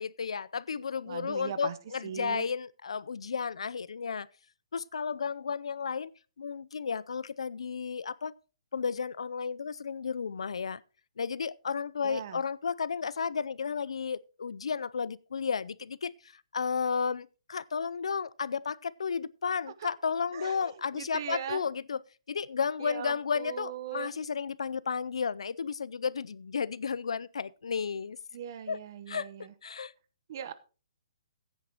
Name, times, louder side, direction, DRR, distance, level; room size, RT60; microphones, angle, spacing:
voice 1, 0.0-4.3 4.7-6.1 6.4-8.3 8.7-10.8 11.2-22.0 22.3-28.2 28.7-28.8 29.1-29.3 29.6-29.9, left 6 dB, 80° left, 0.5 m, -33 dB
voice 2, 1.0-1.8 2.0-2.5 12.0-12.4 20.3-21.6 22.8-24.2 28.3-29.5 30.3-30.5, right 9 dB, 40° right, 0.9 m, -39 dB
14.5 x 9.5 x 2.9 m
hypercardioid pair, 165°, 3 cm